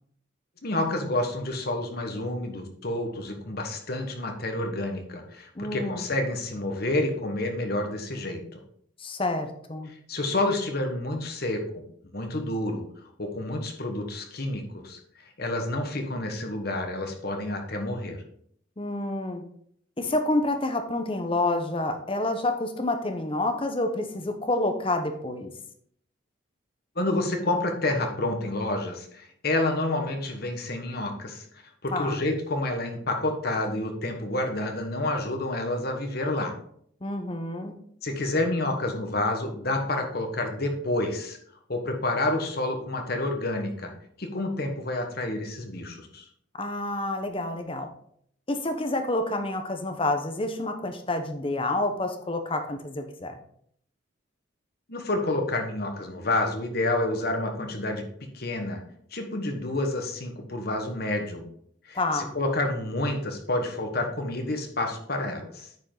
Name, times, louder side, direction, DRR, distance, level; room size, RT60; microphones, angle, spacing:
voice 1, 0.6-8.6 9.9-11.8 12.1-12.9 13.2-18.2 26.9-36.6 38.0-41.4 41.7-43.9 44.2-46.2 54.9-58.0 58.3-58.8 59.1-61.5 61.8-65.7, left 2 dB, 50° left, 4 dB, 1.3 m, -29 dB
voice 2, 5.5-6.1 9.0-9.9 18.8-19.4 20.0-25.5 31.9-32.2 37.0-37.7 46.6-47.9 48.5-53.4 61.9-62.3, left 2 dB, 25° left, 6 dB, 0.8 m, -28 dB
9.3 x 5.2 x 3.9 m, 0.66 s
head